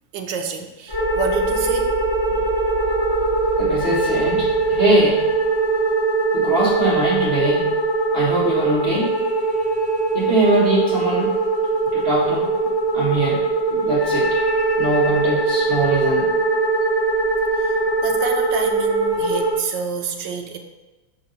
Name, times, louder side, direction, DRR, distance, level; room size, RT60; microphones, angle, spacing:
voice 1, 0.1-1.9 11.9-12.0 17.6-20.6, right 6 dB, 75° right, 4 dB, 1.3 m, -28 dB
sound 1, 0.9-19.5, right 3 dB, 15° left, 1.0 m, -21 dB
voice 2, 3.6-5.3 6.3-7.7 8.1-9.1 10.1-11.3 11.9-13.4 13.7-14.4 14.8-16.3, right 1 dB, 35° right, -5 dB, 1.3 m, -22 dB
5.1 x 3.9 x 5.5 m, 1.2 s
omnidirectional pair, 2.1 m